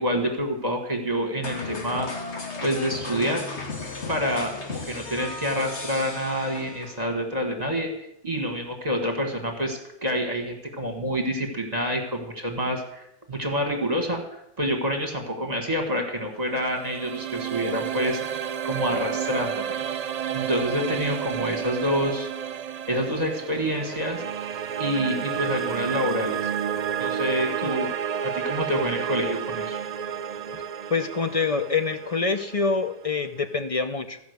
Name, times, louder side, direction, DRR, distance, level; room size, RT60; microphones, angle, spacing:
voice 1, 0.0-2.1 2.6-3.4 4.1-7.9 8.2-18.2 18.6-19.8 20.3-22.3 22.9-24.2 24.8-26.5 27.0-27.9 28.2-29.8, equal, 35° right, 3 dB, 1.6 m, -27 dB
sound 1, 1.4-7.1, left 3 dB, 65° left, 1.9 m, -35 dB
sound 2, 16.3-33.4, right 8 dB, 60° right, 0.4 m, -31 dB
voice 2, 30.9-34.2, left 4 dB, 40° left, 9 dB, 0.6 m, -26 dB
14.5 x 5.4 x 8.0 m, 0.81 s
omnidirectional pair, 1.2 m